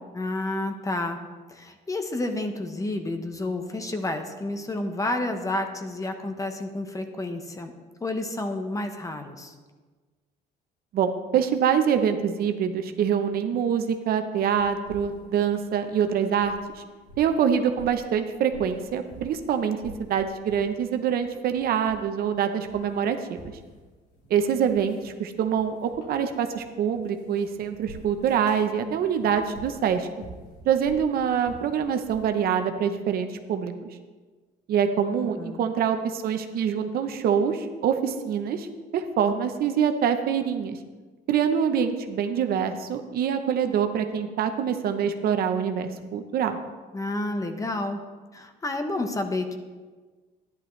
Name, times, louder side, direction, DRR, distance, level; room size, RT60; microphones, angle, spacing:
voice 1, 0.1-1.2 1.5-7.7 8.0-9.5 35.1-35.7 46.9-48.0 48.3-49.6, left 2 dB, 20° left, 6 dB, 1.0 m, -30 dB
voice 2, 10.9-16.8 17.2-23.4 24.3-30.1 30.6-33.9 34.7-38.7 38.9-40.8 41.3-46.6, right 8 dB, 65° right, 7 dB, 0.8 m, -25 dB
sound 1, 14.5-16.7 17.0-19.5 19.8-20.8 21.1-22.3 22.5-32.3, right 1 dB, 80° left, 3.6 m, -48 dB
11.5 x 10.5 x 3.2 m, 1.4 s
cardioid pair, 110°, 17 cm